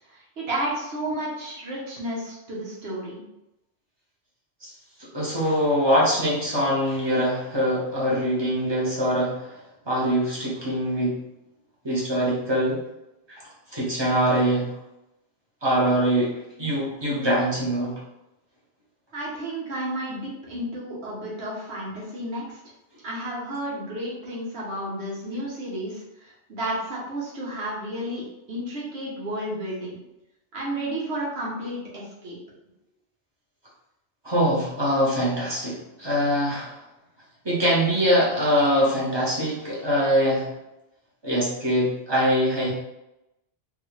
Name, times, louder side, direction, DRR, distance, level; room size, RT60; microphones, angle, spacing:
voice 1, 0.1-3.2 19.1-22.6 23.0-30.0 30.5-32.4, right 1 dB, 80° right, -5 dB, 1.2 m, -32 dB
voice 2, 5.0-9.5 9.9-11.2 11.8-12.8 13.3-14.7 15.6-17.9 34.2-36.8 37.4-40.5 41.2-42.7, equal, 25° right, -5 dB, 1.0 m, -23 dB
3.6 x 2.4 x 3.1 m, 0.91 s
omnidirectional pair, 1.1 m